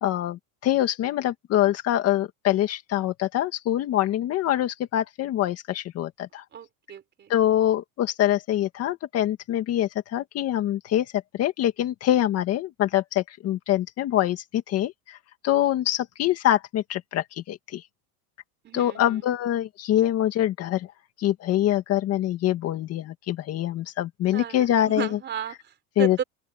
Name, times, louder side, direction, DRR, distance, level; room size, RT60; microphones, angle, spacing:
voice 1, 0.0-6.4 7.3-15.2 15.4-17.8 18.7-20.9 21.2-25.1 26.0-26.2, left 12 dB, 35° left, 1.9 m, -24 dB
voice 2, 6.5-7.3 18.6-19.3 24.3-26.2, right 8 dB, 25° right, 4.3 m, -34 dB
open air
supercardioid pair, 160°, 44 cm